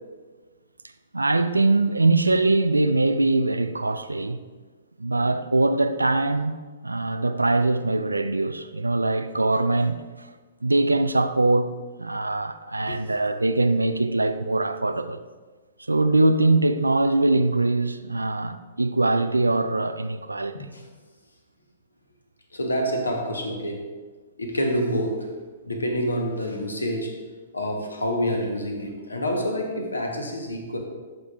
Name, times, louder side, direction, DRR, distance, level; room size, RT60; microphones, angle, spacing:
voice 1, 1.1-4.4 5.0-10.0 10.6-15.2 15.9-20.7, right 2 dB, 80° right, 0.3 m, -22 dB
voice 2, 20.5-20.8 22.5-23.9 24.4-25.3 25.6-27.2 27.5-30.8, equal, 80° left, 1.1 m, -27 dB
11.0 x 5.1 x 2.5 m
figure-of-eight pair, 115°, 0 cm